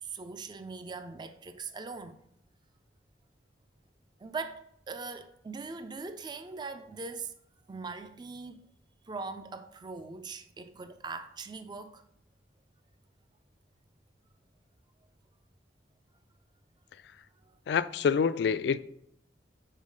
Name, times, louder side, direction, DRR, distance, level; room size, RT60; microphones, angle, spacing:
voice 1, 0.0-2.2 4.2-7.3 7.7-8.6 9.1-12.0, right 4 dB, 25° right, 0.4 m, -41 dB
voice 2, 17.7-18.8, left 6 dB, 70° left, 0.3 m, -26 dB
5.6 x 4.3 x 4.8 m
head